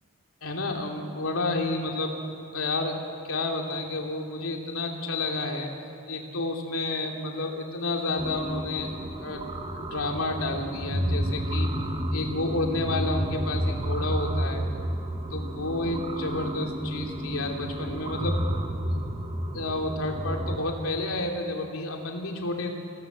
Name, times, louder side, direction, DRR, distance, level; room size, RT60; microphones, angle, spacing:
voice 1, 0.4-2.1 2.5-3.0 3.2-5.7 6.1-8.9 9.2-11.7 12.1-14.6 15.3-18.4 18.9-19.0 19.5-22.7, left 2 dB, 70° left, 1 dB, 2.9 m, -30 dB
sound 1, 8.2-20.6, equal, 25° right, 1.3 m, -31 dB
27.5 x 17.0 x 7.6 m, 2.6 s
head